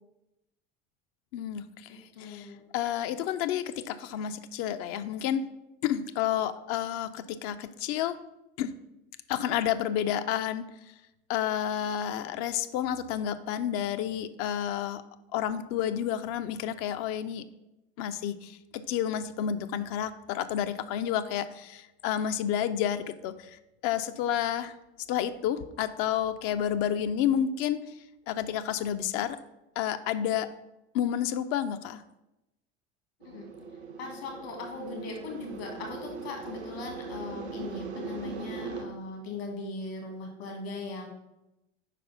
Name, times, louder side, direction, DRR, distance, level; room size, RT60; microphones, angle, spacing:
voice 1, 1.3-5.5 5.8-8.2 8.6-8.7 9.3-10.7 11.3-15.0 15.3-17.4 18.0-24.7 25.1-27.8 28.3-29.4 29.8-30.5 30.9-32.0, left 10 dB, 45° left, 12 dB, 0.5 m, -30 dB
voice 2, 1.9-2.6 33.2-33.5 34.0-41.1, left 3 dB, 65° left, 2 dB, 1.6 m, -39 dB
sound 1, 33.2-38.8, right 4 dB, 80° right, 0.8 m, -40 dB
5.2 x 4.2 x 5.5 m, 0.93 s
figure-of-eight pair, 70°, 33 cm